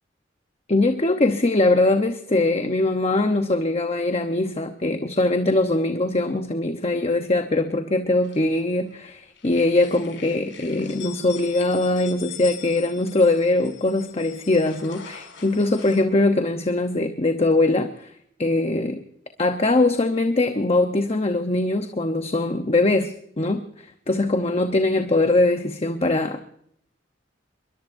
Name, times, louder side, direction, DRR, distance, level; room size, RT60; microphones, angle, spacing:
voice 1, 0.7-18.1 18.4-19.0 19.4-26.4, left 2 dB, 30° left, 6 dB, 0.9 m, -22 dB
sound 1, 8.2-9.0 9.3-16.0, left 9 dB, 70° left, 5.3 m, -43 dB
22.0 x 21.0 x 2.6 m, 0.68 s
head